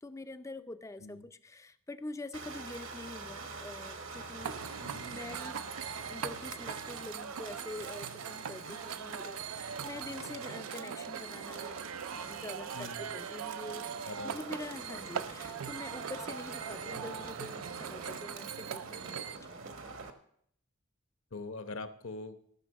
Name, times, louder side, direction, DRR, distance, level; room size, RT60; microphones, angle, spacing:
voice 1, 0.0-4.6 5.0-5.6 6.1-11.8 12.3-13.9 14.2-19.6, left 2 dB, 15° left, 11 dB, 0.4 m, -45 dB
sound 1, 2.3-20.1, right 4 dB, 60° right, 1.2 m, -45 dB
sound 2, 4.4-19.4, right 7 dB, 90° right, 0.5 m, -41 dB
voice 2, 4.8-5.1 12.7-13.1 14.0-14.5 21.3-22.4, left 3 dB, 65° left, 9 dB, 0.9 m, -43 dB
14.5 x 6.0 x 6.3 m, 0.67 s
head